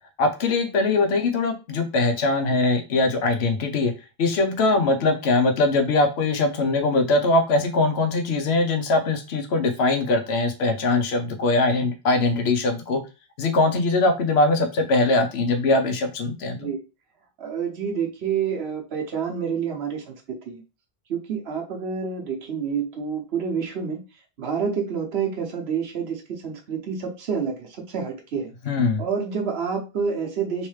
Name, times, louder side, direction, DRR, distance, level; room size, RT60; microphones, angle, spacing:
voice 1, 0.2-3.9 4.2-13.0 13.4-16.7 28.7-29.0, left 2 dB, 75° left, 5 dB, 1.0 m, -21 dB
voice 2, 17.4-20.6 21.1-24.0 24.4-28.5 29.0-30.7, right 6 dB, 75° right, 3 dB, 1.1 m, -28 dB
3.2 x 3.1 x 3.2 m, 0.29 s
omnidirectional pair, 1.1 m